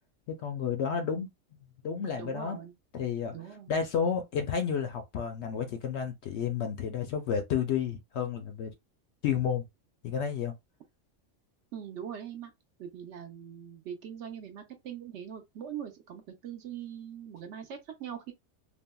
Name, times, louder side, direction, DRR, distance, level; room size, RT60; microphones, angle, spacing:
voice 1, 0.3-1.3 1.8-2.6 2.9-3.3 3.7-8.7 9.2-9.6 10.0-10.5, left 7 dB, 65° left, 0.7 m, -31 dB
voice 2, 2.2-2.7 3.3-3.7 11.7-12.5 12.8-18.3, right 9 dB, 65° right, 0.8 m, -42 dB
3.4 x 2.1 x 2.2 m
omnidirectional pair, 1.4 m